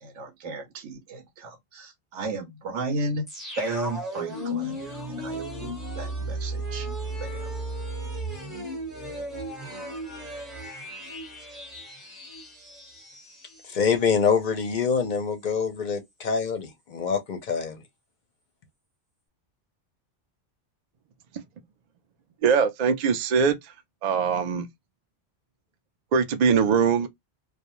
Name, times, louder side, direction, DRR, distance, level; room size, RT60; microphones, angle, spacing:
voice 1, 0.0-3.3 3.6-4.8 5.1-6.9 7.2-7.5, right 2 dB, 90° right, 1.0 m, -34 dB
sound 1, 3.3-14.1 14.4-14.5, right 1 dB, ahead, 0.8 m, -35 dB
voice 2, 13.6-17.8, left 6 dB, 55° left, 0.6 m, -25 dB
voice 3, 22.4-23.7 24.0-24.7 26.1-27.1, right 6 dB, 65° right, 0.4 m, -22 dB
2.3 x 2.1 x 2.8 m
omnidirectional pair, 1.2 m